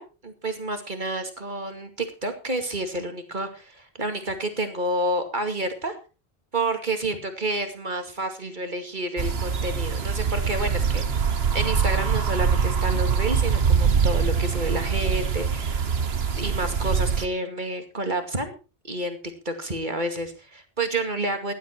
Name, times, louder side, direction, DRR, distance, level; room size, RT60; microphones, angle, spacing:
voice 1, 0.0-5.9 6.5-11.2 11.5-15.8 16.4-18.5 18.8-19.2 19.5-21.5, right 1 dB, 50° right, 7 dB, 2.5 m, -29 dB
sound 1, 9.2-17.2, right 6 dB, 75° right, 1.4 m, -23 dB
15.5 x 11.5 x 4.6 m, 0.32 s
omnidirectional pair, 1.1 m